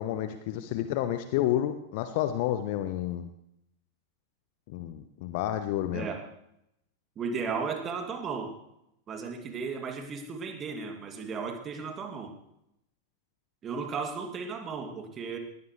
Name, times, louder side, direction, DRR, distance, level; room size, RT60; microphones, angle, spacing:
voice 1, 0.0-3.3 4.7-6.1, left 12 dB, 50° left, 10 dB, 0.9 m, -30 dB
voice 2, 5.9-6.2 7.2-8.5 9.1-12.3 13.6-15.4, right 5 dB, 25° right, 4 dB, 2.5 m, -35 dB
20.0 x 16.5 x 3.3 m, 0.79 s
figure-of-eight pair, 90°, 0 cm